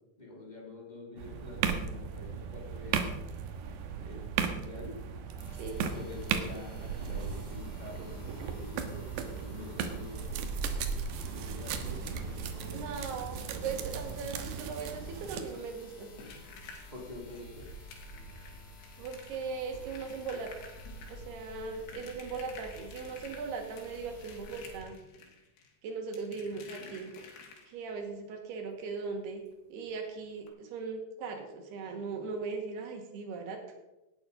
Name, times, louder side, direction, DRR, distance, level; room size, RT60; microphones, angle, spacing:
voice 1, 0.2-3.1 4.0-5.0 5.8-10.5 11.3-12.8 13.5-13.6 16.9-17.6, left 2 dB, 15° left, -1 dB, 2.1 m, -46 dB
sound 1, 1.2-15.4, right 7 dB, 90° right, 3.3 m, -37 dB
sound 2, 5.4-24.8, right 2 dB, 40° left, 4.8 m, -46 dB
voice 2, 12.7-16.1 19.0-20.5 21.1-25.0 25.8-27.1 27.7-29.4 29.7-33.6, right 4 dB, 75° right, 4 dB, 4.0 m, -39 dB
sound 3, 15.5-28.0 29.4-29.5 29.8-30.0 30.4-30.5, left 5 dB, 80° left, 4.4 m, -52 dB
18.5 x 9.5 x 5.3 m, 0.99 s
omnidirectional pair, 4.7 m